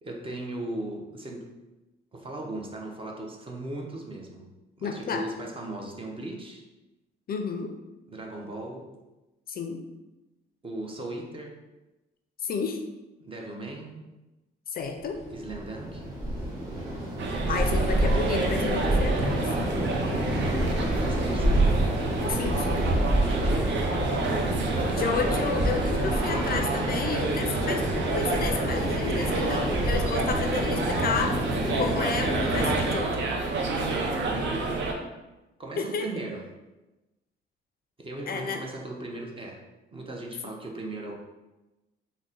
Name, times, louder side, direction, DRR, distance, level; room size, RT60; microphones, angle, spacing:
voice 1, 0.0-1.5 2.1-4.5 4.8-6.6 8.1-8.9 10.6-11.6 13.2-14.0 15.3-16.0 20.0-21.7 23.2-23.8 33.6-34.8 35.6-36.5 38.0-39.6 39.9-41.1, right 2 dB, 25° right, 0 dB, 0.7 m, -38 dB
voice 2, 4.8-5.2 7.3-7.7 9.5-9.8 12.4-12.8 14.7-15.2 17.3-19.5 22.2-22.8 25.0-31.4 31.8-33.2 35.8-36.1 38.3-38.6, left 5 dB, 50° left, 5 dB, 0.4 m, -31 dB
sound 1, 15.0-33.0, right 1 dB, 50° right, 1.4 m, -28 dB
sound 2, 17.2-34.9, right 3 dB, 65° right, 0.6 m, -30 dB
3.9 x 2.1 x 3.7 m, 1.0 s
cardioid pair, 90°, 20 cm